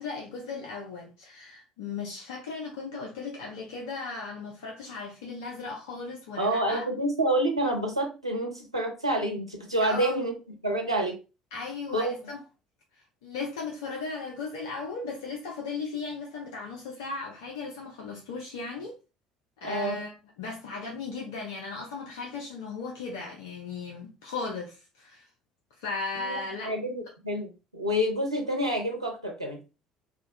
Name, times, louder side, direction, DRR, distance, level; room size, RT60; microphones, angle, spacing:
voice 1, 0.0-6.9 9.8-10.2 11.5-12.4 13.2-18.9 19.6-25.3 25.8-26.7, left 4 dB, 65° left, 0.5 m, -36 dB
voice 2, 6.4-10.3 10.6-11.2 11.9-12.1 19.6-20.0 26.2-29.6, right 1 dB, 90° right, 0.5 m, -28 dB
2.3 x 2.1 x 2.7 m
figure-of-eight pair, 55°, 3 cm